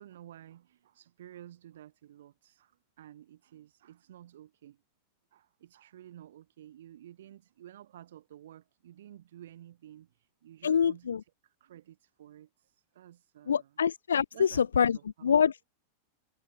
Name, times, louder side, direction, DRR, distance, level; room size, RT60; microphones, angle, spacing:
voice 1, 0.0-4.8 5.3-11.1 11.4-13.7 14.3-15.5, right 12 dB, 65° right, 5.5 m, -52 dB
voice 2, 10.6-11.2 13.5-15.0 15.2-15.6, left 7 dB, 75° left, 0.3 m, -25 dB
figure-of-eight pair, 90°, 0 cm